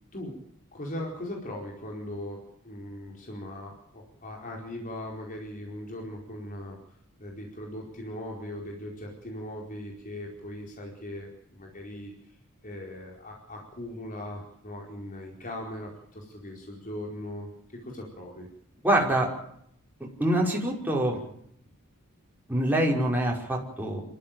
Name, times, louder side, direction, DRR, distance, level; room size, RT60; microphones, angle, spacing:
voice 1, 0.1-0.4 0.7-12.1 12.6-17.5 17.8-18.5, left 1 dB, 40° left, -1 dB, 4.7 m, -39 dB
voice 2, 18.8-19.3 20.2-21.2 22.5-24.0, right 1 dB, 10° right, -2 dB, 5.6 m, -25 dB
26.5 x 14.0 x 9.3 m, 0.70 s
head